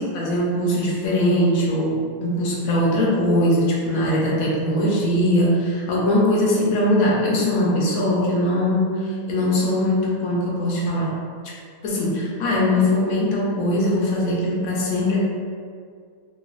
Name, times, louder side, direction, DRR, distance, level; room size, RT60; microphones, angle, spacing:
voice 1, 0.0-11.2 11.4-11.5 11.8-15.2, left 1 dB, 85° left, -4 dB, 1.1 m, -21 dB
3.0 x 2.5 x 2.4 m, 2.1 s
omnidirectional pair, 1.5 m